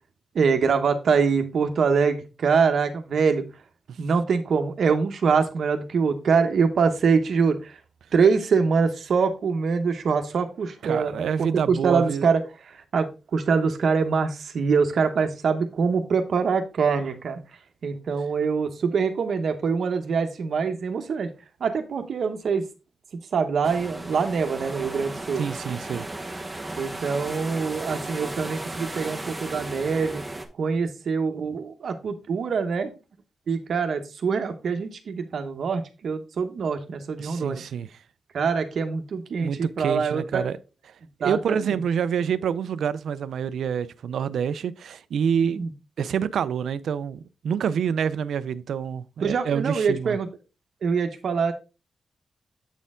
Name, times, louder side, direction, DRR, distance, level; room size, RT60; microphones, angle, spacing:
voice 1, 0.3-3.4 4.0-7.8 8.1-17.4 17.8-21.3 21.6-22.6 23.3-25.4 26.8-30.2 30.6-32.9 33.5-37.6 38.3-40.5 41.2-41.8 45.5-45.7 49.2-50.3 50.8-51.5, right 5 dB, 60° right, 0.9 m, -24 dB
voice 2, 10.8-12.2 25.4-26.1 37.2-37.9 39.4-40.6 41.2-45.6 46.0-50.2, right 7 dB, 90° right, 0.4 m, -27 dB
sound 1, 23.6-30.5, right 2 dB, 10° right, 0.9 m, -35 dB
8.0 x 4.3 x 3.6 m
wide cardioid pair, 160°, 0 cm